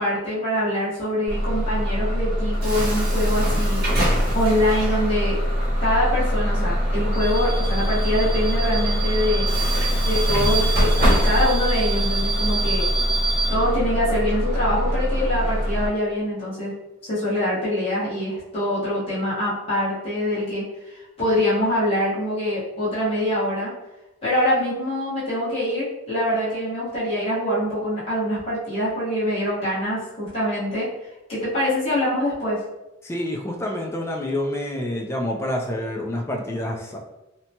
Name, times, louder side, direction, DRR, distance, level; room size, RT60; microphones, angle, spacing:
voice 1, 0.0-3.8 4.3-5.4 5.8-9.5 10.0-12.9 13.5-16.7 17.1-23.7 24.2-30.9 31.3-32.6, left 1 dB, 30° left, -11 dB, 1.2 m, -24 dB
Bus / Alarm, 1.3-15.9, equal, 50° right, 0.9 m, -22 dB
voice 2, 33.0-37.0, left 1 dB, 15° left, 0 dB, 0.3 m, -27 dB
2.9 x 2.2 x 2.7 m, 0.98 s
head